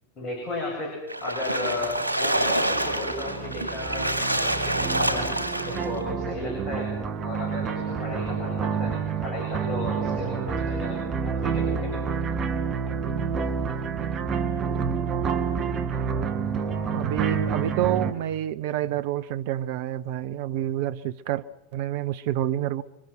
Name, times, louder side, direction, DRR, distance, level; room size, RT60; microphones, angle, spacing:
voice 1, 0.2-6.9 7.2-12.0, left 2 dB, 35° left, 8.0 m, -34 dB
Splash splatter, 1.1-6.0, right 1 dB, 85° left, 3.0 m, -27 dB
sound 1, 1.8-18.1, right 6 dB, 30° right, 2.5 m, -29 dB
voice 2, 16.9-21.4 21.7-22.8, right 13 dB, 50° right, 0.8 m, -28 dB
28.5 x 24.0 x 6.0 m
figure-of-eight pair, 90°, 0 cm